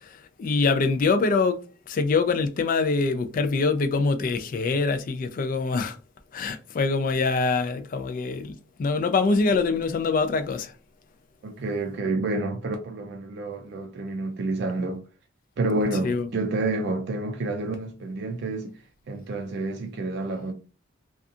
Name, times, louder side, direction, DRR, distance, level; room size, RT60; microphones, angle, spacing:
voice 1, 0.0-1.6 1.9-6.0 6.3-10.7 16.0-16.3, left 4 dB, 45° left, 0.3 m, -24 dB
voice 2, 11.4-15.0 15.6-18.7 19.1-20.5, right 2 dB, 60° right, 0.4 m, -29 dB
2.6 x 2.3 x 2.4 m
head